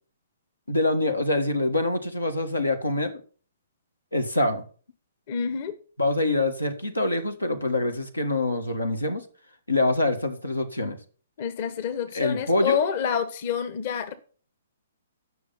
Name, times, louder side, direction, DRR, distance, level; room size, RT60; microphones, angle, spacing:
voice 1, 0.7-3.1 4.1-4.6 6.0-9.2 9.7-11.0 12.1-12.8, left 2 dB, 90° left, 1.4 m, -25 dB
voice 2, 5.3-5.7 11.4-14.1, left 7 dB, 45° left, 1.1 m, -28 dB
9.9 x 6.2 x 5.6 m
figure-of-eight pair, 125°, 0 cm